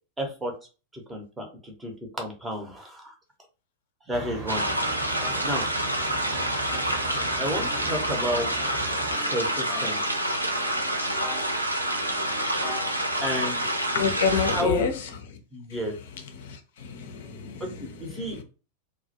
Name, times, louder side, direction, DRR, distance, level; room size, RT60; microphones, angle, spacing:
voice 1, 0.2-0.5 0.9-3.1 4.1-4.6 5.4-5.7 7.4-8.5 9.3-10.0 11.8-11.9 13.2-13.7 14.3-14.9 15.5-15.9 17.6-17.7 18.0-18.4, equal, 10° right, 0.7 m, -31 dB
sound 1, 4.1-9.2, right 3 dB, 40° right, 0.8 m, -38 dB
sound 2, 4.4-13.9, left 2 dB, 15° left, 0.9 m, -42 dB
sound 3, 4.5-14.6, right 1 dB, 85° right, 0.4 m, -28 dB
voice 2, 13.9-15.1 16.3-18.4, left 6 dB, 55° left, 0.5 m, -28 dB
2.2 x 2.1 x 2.8 m
figure-of-eight pair, 90°, 0 cm